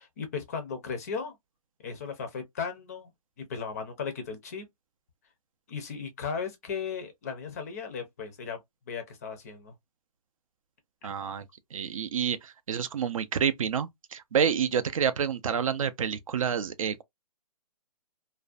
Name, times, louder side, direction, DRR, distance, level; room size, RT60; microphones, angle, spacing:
voice 1, 0.0-1.4 1.8-3.1 3.4-4.6 5.7-8.6 8.9-9.7, left 6 dB, 25° left, 0.4 m, -36 dB
voice 2, 11.0-11.4 11.7-17.0, right 7 dB, 60° right, 0.4 m, -28 dB
2.4 x 2.1 x 2.4 m
hypercardioid pair, 160°, 20 cm